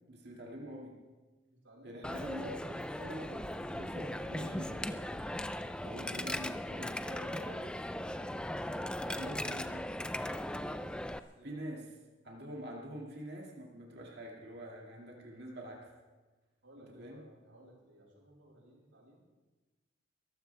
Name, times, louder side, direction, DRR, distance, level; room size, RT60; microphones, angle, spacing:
voice 1, 0.1-1.0 1.8-5.1 5.8-7.6 9.0-9.9 11.4-11.9 12.2-15.9 16.8-17.2, equal, 55° right, -1 dB, 2.1 m, -45 dB
voice 2, 1.5-2.3 11.1-11.6 12.5-12.7 16.6-19.3, right 1 dB, 85° right, -4 dB, 6.2 m, -59 dB
Coin (dropping), 2.0-11.2, left 1 dB, 5° left, 0.4 m, -38 dB
22.5 x 14.5 x 3.4 m, 1.2 s
head